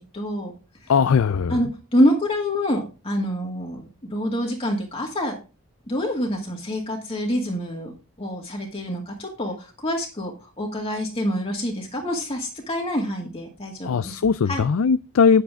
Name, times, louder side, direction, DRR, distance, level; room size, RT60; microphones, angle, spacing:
voice 1, 0.1-0.5 1.5-5.4 5.9-7.9 8.2-14.2 14.5-14.7, equal, 25° left, 1.9 m, -26 dB
voice 2, 0.9-1.6 13.8-15.4, left 6 dB, 70° left, 0.4 m, -19 dB
10.0 x 7.9 x 3.6 m
head